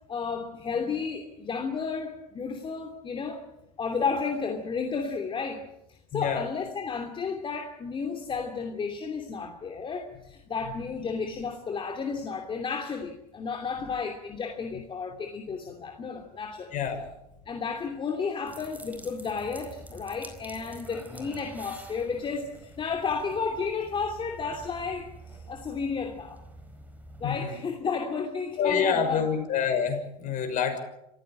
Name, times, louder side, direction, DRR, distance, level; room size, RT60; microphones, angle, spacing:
voice 1, 0.1-3.4 3.8-16.7 17.4-26.4 27.2-29.3, left 5 dB, 25° left, 3 dB, 2.8 m, -32 dB
voice 2, 6.1-6.5 16.7-17.0 27.2-27.6 28.6-30.8, left 7 dB, 40° left, 6 dB, 6.1 m, -27 dB
sound 1, 18.5-27.5, right 2 dB, 10° right, 4.6 m, -47 dB
26.5 x 15.5 x 8.9 m, 0.85 s
hypercardioid pair, 90°, 20 cm